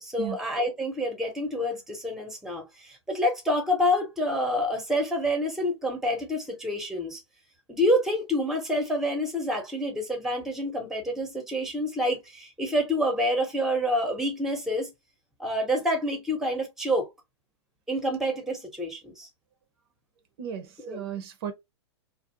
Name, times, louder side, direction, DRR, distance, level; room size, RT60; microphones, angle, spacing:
voice 1, 0.0-7.2 7.7-14.9 15.4-17.1 17.9-19.3 20.8-21.0, equal, 5° right, 0.8 m, -27 dB
voice 2, 20.4-21.5, right 9 dB, 55° right, 0.6 m, -35 dB
2.5 x 2.0 x 2.8 m
hypercardioid pair, 120°, 15 cm